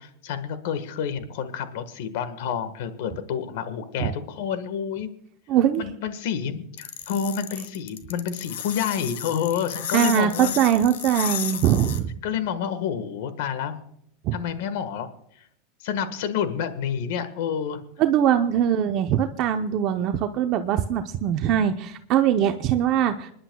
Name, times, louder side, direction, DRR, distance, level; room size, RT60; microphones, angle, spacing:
voice 1, 0.0-5.1 5.8-10.5 12.2-13.8 14.3-15.1 15.3-15.5 15.8-17.8, left 8 dB, 70° left, 10 dB, 1.5 m, -29 dB
voice 2, 5.5-5.8 9.9-12.1 14.2-14.4 18.0-23.3, right 10 dB, 45° right, 6 dB, 0.7 m, -22 dB
sound 1, 6.8-12.0, left 10 dB, 85° left, 1.8 m, -33 dB
27.0 x 11.0 x 2.3 m, 0.70 s
supercardioid pair, 130°, 0 cm